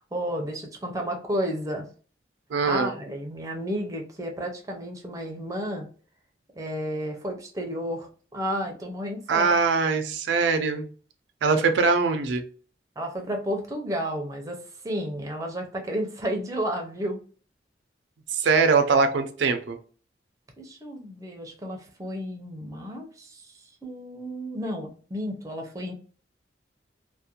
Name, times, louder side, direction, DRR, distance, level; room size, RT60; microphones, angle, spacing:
voice 1, 0.1-1.8 2.6-5.9 6.6-9.6 11.5-11.7 13.0-14.6 14.8-17.2 20.6-23.4 23.8-25.9, equal, 20° right, 2 dB, 0.5 m, -32 dB
voice 2, 2.5-2.9 9.3-10.9 11.4-12.4 18.3-19.8, right 4 dB, 85° right, 7 dB, 0.4 m, -22 dB
2.4 x 2.1 x 2.8 m, 0.41 s
head